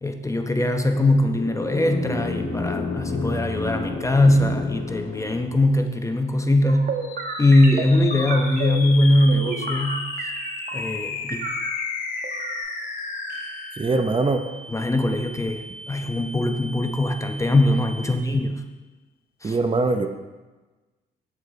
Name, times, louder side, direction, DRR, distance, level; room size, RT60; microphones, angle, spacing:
voice 1, 0.0-6.9 7.4-10.1 10.7-11.4 14.7-18.6 19.4-19.6, left 1 dB, 15° left, 5 dB, 0.9 m, -21 dB
sound 1, 0.8-5.8, left 3 dB, 45° left, 1.9 m, -31 dB
sound 2, 6.6-11.0 11.3-12.6, right 4 dB, 50° right, 1.2 m, -32 dB
sound 3, 6.9-18.5, left 3 dB, 80° left, 1.7 m, -35 dB
voice 2, 13.8-14.4 19.4-20.1, right 3 dB, 25° right, 6 dB, 0.8 m, -22 dB
8.7 x 8.2 x 3.9 m, 1.2 s
cardioid pair, 90°, 20 cm